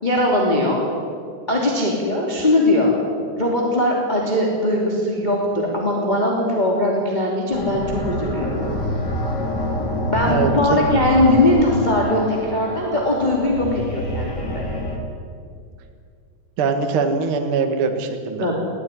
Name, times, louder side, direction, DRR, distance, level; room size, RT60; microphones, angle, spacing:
voice 1, 0.0-0.8 1.5-2.9 3.4-8.6 10.1-14.7 18.4-18.6, left 1 dB, 15° left, -2 dB, 1.9 m, -20 dB
sound 1, 7.5-15.0, left 1 dB, 30° left, 2.3 m, -26 dB
voice 2, 10.2-10.8 16.6-18.5, right 5 dB, 90° right, 6 dB, 1.1 m, -22 dB
20.5 x 15.5 x 10.0 m, 2.2 s
omnidirectional pair, 5.6 m